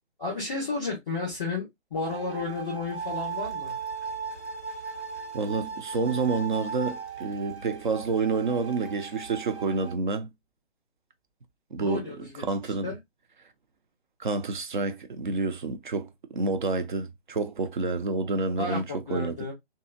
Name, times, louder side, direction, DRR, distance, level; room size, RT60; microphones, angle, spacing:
voice 1, 0.2-3.7 11.8-12.4 12.8-13.0 18.6-19.5, left 3 dB, ahead, 0.4 m, -32 dB
sound 1, 2.0-9.9, right 5 dB, 85° right, 1.6 m, -37 dB
voice 2, 5.3-10.3 11.7-12.9 14.2-18.8 19.1-19.3, right 4 dB, 45° right, 0.6 m, -29 dB
2.7 x 2.7 x 2.4 m
figure-of-eight pair, 135°, 33 cm